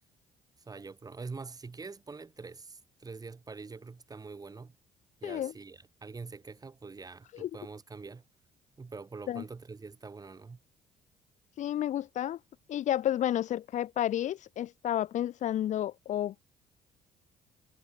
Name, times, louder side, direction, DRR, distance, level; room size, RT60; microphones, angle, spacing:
voice 1, 0.6-4.7 5.2-8.2 8.8-10.6, right 4 dB, 25° right, 1.4 m, -45 dB
voice 2, 5.2-5.5 7.3-7.5 9.3-9.4 11.6-12.4 12.7-16.4, left 11 dB, 60° left, 0.7 m, -31 dB
supercardioid pair, 70°, 14 cm